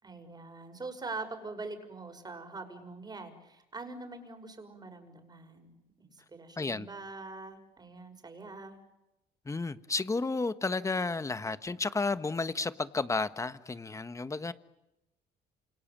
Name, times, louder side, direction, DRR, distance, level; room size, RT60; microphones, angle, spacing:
voice 1, 0.0-8.8, right 3 dB, 25° right, 6.0 m, -44 dB
voice 2, 6.6-6.9 9.4-14.5, left 3 dB, 20° left, 1.4 m, -32 dB
28.5 x 28.0 x 7.6 m
cardioid pair, 110°, 17 cm